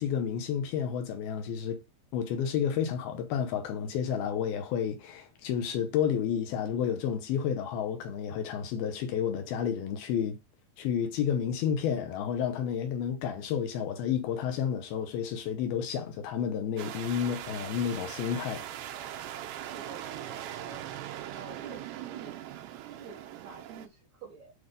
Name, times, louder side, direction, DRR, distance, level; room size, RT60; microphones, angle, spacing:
voice 1, 0.0-1.8 2.1-10.4 10.8-18.7, left 8 dB, 75° left, 2.6 m, -31 dB
sound 1, 16.8-23.9, right 11 dB, 85° right, 2.9 m, -40 dB
voice 2, 19.7-20.9 21.3-24.5, right 5 dB, 65° right, 1.9 m, -49 dB
8.1 x 3.4 x 5.3 m
omnidirectional pair, 4.7 m